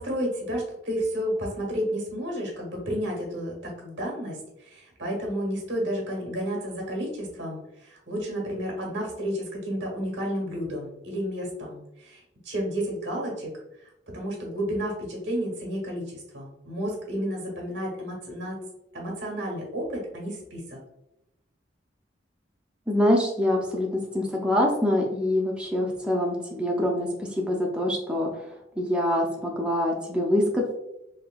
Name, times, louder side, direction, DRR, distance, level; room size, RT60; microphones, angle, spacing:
voice 1, 0.0-13.5 14.1-18.6 18.9-20.8, equal, 90° right, -1 dB, 1.2 m, -31 dB
voice 2, 22.9-28.3 28.8-30.7, left 1 dB, 5° right, -1 dB, 0.3 m, -25 dB
3.3 x 2.6 x 2.2 m, 0.86 s
head